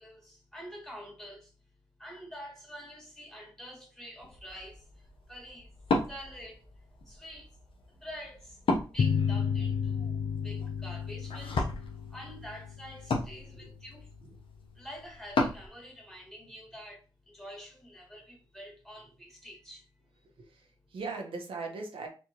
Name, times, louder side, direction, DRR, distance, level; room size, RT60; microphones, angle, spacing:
voice 1, 0.0-1.5 2.0-5.7 6.1-6.7 7.1-7.6 7.9-8.6 8.9-14.1 14.7-19.9, equal, 5° left, 2.0 m, -47 dB
Wood, 4.2-15.7, left 3 dB, 85° left, 1.0 m, -36 dB
sound 1, 9.0-14.1, left 6 dB, 60° left, 0.5 m, -32 dB
voice 2, 13.4-13.7 14.2-14.3 20.2-22.1, right 4 dB, 85° right, 1.0 m, -40 dB
4.4 x 3.6 x 3.0 m
wide cardioid pair, 125°, 9 cm